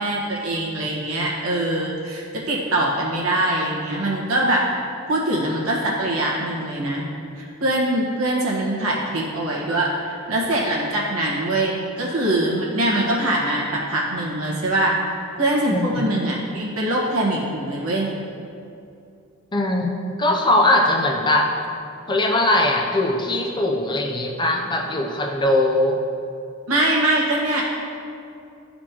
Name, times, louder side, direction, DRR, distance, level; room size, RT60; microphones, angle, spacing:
voice 1, 0.0-4.7 5.1-7.1 7.4-15.0 15.4-18.1 26.7-27.6, right 1 dB, 75° right, -4 dB, 1.4 m, -23 dB
voice 2, 19.5-19.9 20.2-21.5 22.1-26.0, left 1 dB, 20° left, 1 dB, 0.5 m, -20 dB
11.5 x 4.3 x 2.9 m, 2.6 s
head